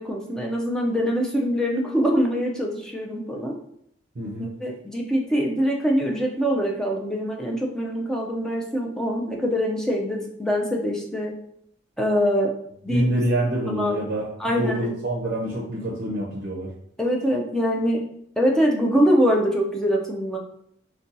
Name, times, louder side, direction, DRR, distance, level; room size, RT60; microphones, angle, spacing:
voice 1, 0.0-3.6 4.4-11.3 12.0-12.5 12.8-13.1 13.7-14.0 14.4-14.9 17.0-18.0 18.4-20.4, equal, 5° left, -1 dB, 0.4 m, -23 dB
voice 2, 4.2-4.5 12.9-14.3 14.5-16.7, right 1 dB, 50° right, -3 dB, 0.5 m, -26 dB
2.6 x 2.2 x 3.9 m, 0.72 s
head